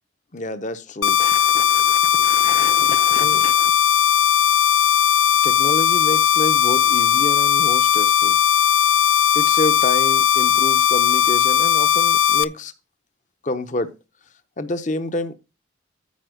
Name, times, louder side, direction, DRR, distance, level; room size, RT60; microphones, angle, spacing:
voice 1, 0.3-3.7 5.4-8.4 9.3-12.7 13.4-13.9 14.6-15.3, left 2 dB, 40° left, 0.7 m, -28 dB
sound 1, 1.0-12.4, left 9 dB, 85° left, 0.4 m, -17 dB
9.4 x 4.4 x 6.3 m
head